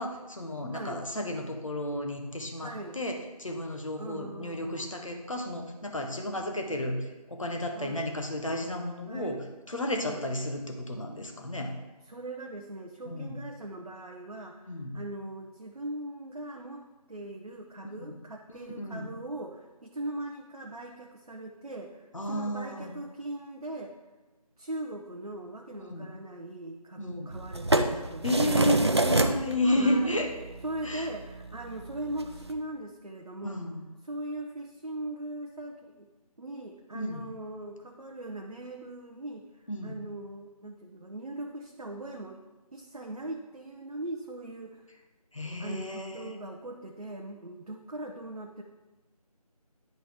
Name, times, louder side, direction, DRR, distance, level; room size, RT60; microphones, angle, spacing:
voice 1, 0.0-11.7 13.1-13.4 14.6-15.0 18.0-18.1 18.7-19.1 22.1-22.9 25.8-26.1 27.0-27.4 28.2-30.3 30.8-31.1 33.4-33.9 36.9-37.3 39.7-40.0 45.3-46.4, left 1 dB, 55° left, 3 dB, 1.1 m, -32 dB
voice 2, 0.7-1.0 2.6-3.0 4.0-5.0 7.7-8.1 9.1-9.5 10.0-10.2 12.1-23.9 24.6-28.3 29.6-30.2 30.6-33.6 34.1-36.1 36.4-42.4 42.7-44.9 45.6-48.6, right 1 dB, 70° right, 2 dB, 0.8 m, -40 dB
sound 1, 27.3-32.5, right 2 dB, 45° right, 0.4 m, -29 dB
10.5 x 4.2 x 3.7 m, 1.2 s
figure-of-eight pair, 165°, 20 cm